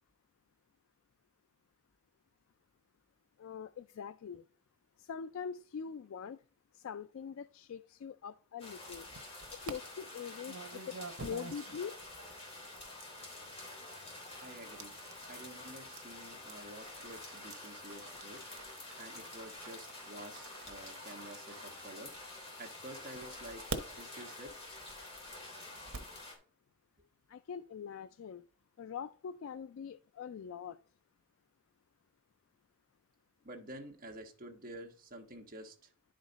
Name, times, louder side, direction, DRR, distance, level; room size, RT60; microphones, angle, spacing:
voice 1, 3.4-4.4 5.0-6.4 6.7-9.1 9.7-11.0 11.2-12.0 27.3-28.4 28.8-30.8, left 7 dB, 70° left, 0.3 m, -43 dB
sound 1, 8.6-26.3, left 2 dB, 30° left, 3.3 m, -48 dB
sound 2, 8.8-9.7 10.5-22.5 23.1-26.2, right 4 dB, 80° right, 1.1 m, -49 dB
voice 2, 14.4-14.9 15.3-18.5 19.0-22.1 22.6-24.6 33.4-35.9, right 1 dB, 40° right, 1.2 m, -50 dB
11.0 x 5.1 x 3.9 m
head